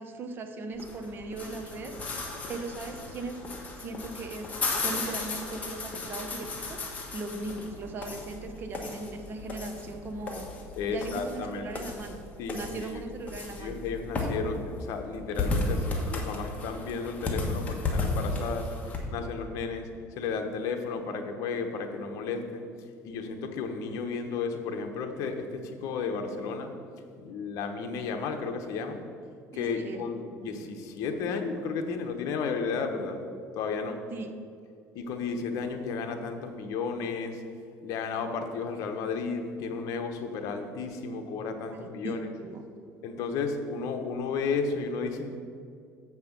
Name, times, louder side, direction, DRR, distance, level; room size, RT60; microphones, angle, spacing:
voice 1, 0.0-3.4 3.8-4.5 4.8-10.5 10.9-12.2 12.5-13.8 29.5-30.0 34.1-34.3 41.7-42.6, right 3 dB, 35° right, 6 dB, 0.8 m, -38 dB
sound 1, 0.7-19.0, left 2 dB, 25° left, 1.3 m, -35 dB
voice 2, 10.8-11.9 12.4-13.0 13.6-18.7 19.1-19.9 20.2-22.6 23.0-26.7 27.2-29.0 29.5-33.2 33.5-34.0 34.9-37.4 37.8-42.3 43.0-45.3, left 5 dB, 60° left, 5 dB, 1.0 m, -33 dB
7.3 x 6.0 x 5.9 m, 2.3 s
cardioid pair, 140°, 6 cm